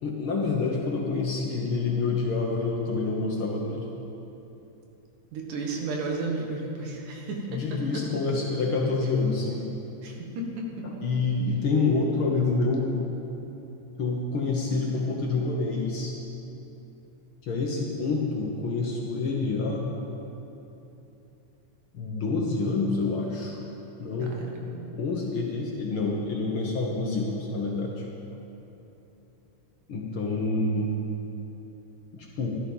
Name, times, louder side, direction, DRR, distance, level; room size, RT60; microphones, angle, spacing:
voice 1, 0.0-3.9 7.5-9.6 10.8-13.0 14.0-16.2 17.4-19.9 21.9-23.6 24.0-24.3 24.9-28.1 29.9-30.9 32.1-32.5, left 3 dB, 55° left, -1 dB, 1.6 m, -27 dB
voice 2, 5.3-7.6 7.9-8.0 10.0-10.9 24.2-24.9, right 3 dB, 85° right, 0 dB, 3.1 m, -33 dB
14.5 x 11.5 x 5.6 m, 3.0 s
omnidirectional pair, 3.5 m